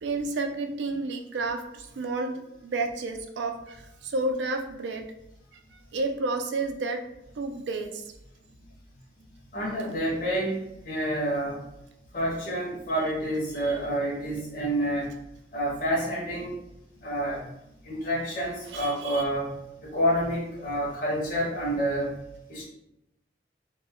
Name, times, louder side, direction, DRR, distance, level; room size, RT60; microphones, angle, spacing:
voice 1, 0.0-5.0 5.9-7.0 7.4-8.0 13.6-13.8 18.7-19.2, right 3 dB, 80° right, 5 dB, 0.4 m, -31 dB
voice 2, 9.5-11.6 12.1-15.1 15.5-16.5 16.9-17.5 17.8-22.2 22.5-22.6, right 1 dB, 50° left, -6 dB, 0.6 m, -28 dB
2.1 x 2.1 x 3.5 m, 0.85 s
head